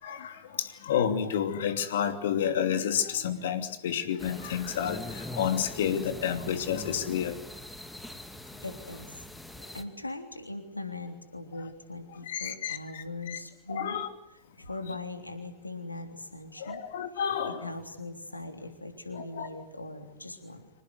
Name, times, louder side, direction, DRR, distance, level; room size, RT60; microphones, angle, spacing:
voice 1, 0.0-7.4 12.3-13.4 13.7-14.1 16.6-17.6 19.1-19.5, left 9 dB, 60° left, 2.8 m, -30 dB
sound 1, 4.2-9.8, left 1 dB, 5° left, 2.3 m, -42 dB
voice 2, 8.6-9.2 9.7-14.0 14.6-16.8 17.1-20.7, left 2 dB, 85° left, 3.3 m, -40 dB
26.0 x 18.5 x 9.5 m
figure-of-eight pair, 90°, 0 cm